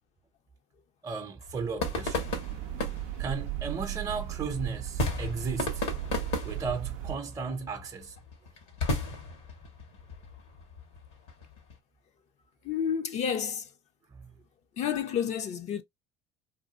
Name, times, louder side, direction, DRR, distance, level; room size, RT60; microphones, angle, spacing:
voice 1, 1.0-2.3 3.2-5.8 6.4-8.2 14.1-14.3, right 5 dB, 25° right, 0.7 m, -35 dB
sound 1, 1.4-11.7, left 3 dB, 85° left, 1.2 m, -36 dB
sound 2, 1.8-7.2, right 13 dB, 70° right, 0.4 m, -36 dB
voice 2, 12.6-13.7 14.8-15.8, left 8 dB, 55° left, 0.6 m, -30 dB
2.6 x 2.6 x 2.3 m
supercardioid pair, 75°, 14 cm